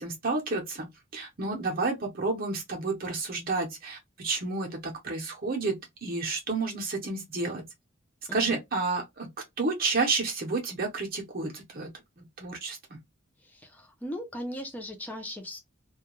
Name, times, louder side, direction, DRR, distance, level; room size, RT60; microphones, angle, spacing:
voice 1, 0.0-7.7 8.3-9.3 9.6-11.9 12.2-13.0, right 3 dB, 45° right, 0.7 m, -31 dB
voice 2, 8.3-8.6 13.4-15.6, equal, 10° left, 0.5 m, -38 dB
2.3 x 2.2 x 2.9 m
head